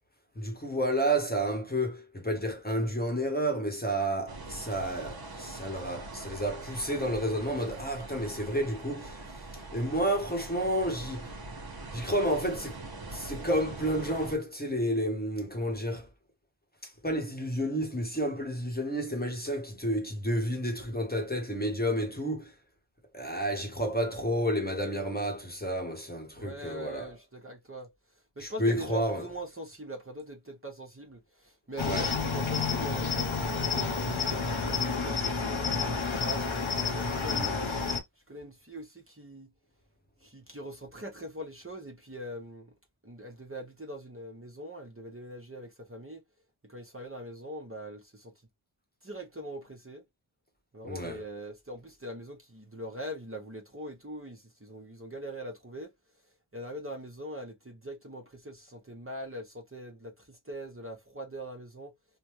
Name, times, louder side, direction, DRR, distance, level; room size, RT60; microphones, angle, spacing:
voice 1, 0.4-9.4 9.7-11.3 11.9-12.8 13.1-16.1 16.8-22.5 23.1-27.1 28.4-29.2 31.8-32.1 37.3-37.5 50.8-51.2, equal, 20° left, 1.1 m, -30 dB
sound 1, 4.3-14.4, right 2 dB, 50° right, 1.1 m, -43 dB
voice 2, 26.4-34.5 34.9-36.5 36.9-37.7 38.3-39.5 40.2-42.7 43.0-46.2 46.6-48.3 49.0-50.0 50.7-55.9 56.5-61.9, right 1 dB, 25° right, 1.0 m, -42 dB
Cricket, 31.8-38.0, left 4 dB, 75° left, 1.0 m, -30 dB
3.4 x 2.2 x 3.0 m
wide cardioid pair, 50°, 48 cm